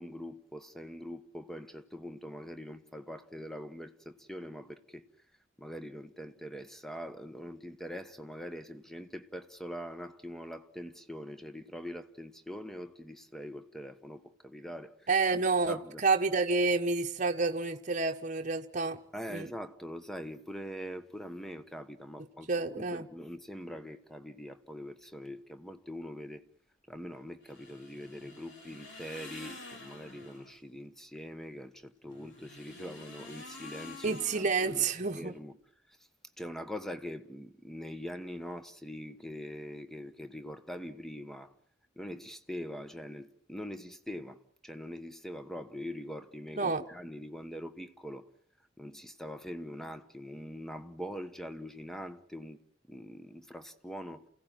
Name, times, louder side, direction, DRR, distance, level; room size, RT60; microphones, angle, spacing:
voice 1, 0.0-5.0 5.6-14.9 15.3-15.4 15.7-16.0 19.1-22.5 22.8-26.4 26.9-34.9 35.1-35.6 36.4-41.5 42.0-48.2 48.8-52.6 52.9-54.3, equal, ahead, 1.2 m, -43 dB
voice 2, 15.1-19.0 19.3-19.5 22.5-23.1 34.0-35.3 46.6-46.8, right 4 dB, 40° right, 1.2 m, -29 dB
sound 1, 27.4-30.6 32.0-35.4, left 2 dB, 65° left, 3.9 m, -49 dB
29.0 x 16.5 x 9.0 m
head